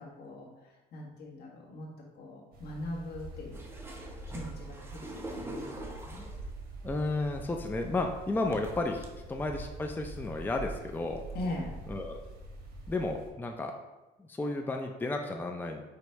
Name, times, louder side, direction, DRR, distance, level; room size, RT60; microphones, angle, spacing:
voice 1, 0.0-1.9 2.1-3.6 4.3-6.2 11.3-11.8, left 1 dB, 70° left, -2 dB, 1.6 m, -41 dB
sound 1, 2.5-13.3, right 2 dB, 60° right, 1.5 m, -45 dB
sound 2, 3.5-6.5 7.5-7.6 8.5-9.1 9.7-9.8 10.1-10.5 11.2-11.3, right 1 dB, 15° right, 0.9 m, -44 dB
voice 2, 6.8-11.2 11.9-12.2 12.9-13.7 14.2-15.8, left 2 dB, 10° left, 3 dB, 0.5 m, -33 dB
5.1 x 4.0 x 4.6 m, 1.1 s
cardioid pair, 110°, 17 cm